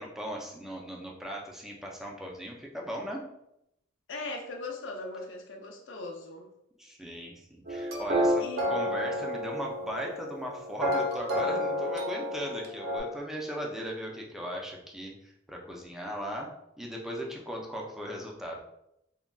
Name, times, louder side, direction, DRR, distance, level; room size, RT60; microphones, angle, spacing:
voice 1, 0.0-3.2 6.8-15.1 15.5-18.6, equal, ahead, -1 dB, 0.4 m, -38 dB
voice 2, 4.1-6.5 8.4-8.7, left 3 dB, 75° left, 2 dB, 0.5 m, -39 dB
sound 1, 7.7-13.0, equal, 55° right, 0.6 m, -30 dB
3.7 x 2.2 x 2.3 m, 0.80 s
head